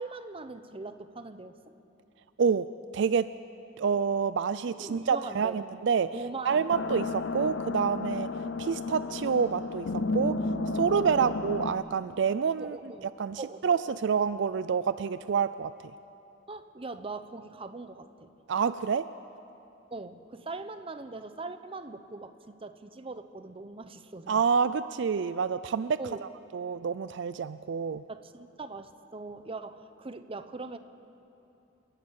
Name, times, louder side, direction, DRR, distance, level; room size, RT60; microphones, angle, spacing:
voice 1, 0.0-1.6 4.6-5.6 6.1-6.7 11.1-11.3 12.6-13.1 13.4-14.0 16.5-18.3 19.9-24.4 26.0-26.2 28.1-30.8, right 3 dB, 30° right, 10 dB, 0.8 m, -41 dB
voice 2, 2.9-3.3 3.8-6.1 6.4-8.3 8.6-10.4 10.7-12.8 13.2-15.7 18.5-19.1 24.3-28.0, right 6 dB, 65° right, 14 dB, 0.4 m, -28 dB
sound 1, 6.7-11.7, left 3 dB, 80° left, 0.8 m, -32 dB
28.5 x 11.0 x 8.5 m, 2.8 s
head